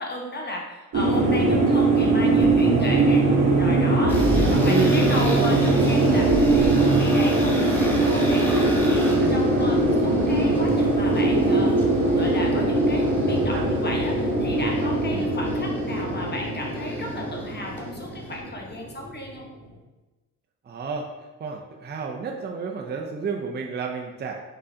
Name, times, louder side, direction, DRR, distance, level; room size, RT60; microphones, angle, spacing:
voice 1, 0.0-11.7 12.1-19.5, left 1 dB, 30° left, 0 dB, 1.1 m, -34 dB
sound 1, 0.9-19.3, right 2 dB, 55° right, 1.0 m, -21 dB
sound 2, 2.4-7.3, right 5 dB, 85° right, 0.5 m, -26 dB
sound 3, 4.1-18.4, left 1 dB, 5° left, 0.9 m, -33 dB
voice 2, 4.3-5.5 9.2-10.0 13.5-13.7 15.1-15.3 20.6-21.1 21.4-24.3, right 5 dB, 30° right, 1 dB, 0.5 m, -31 dB
3.8 x 3.8 x 2.7 m, 1.1 s
supercardioid pair, 60°, 33 cm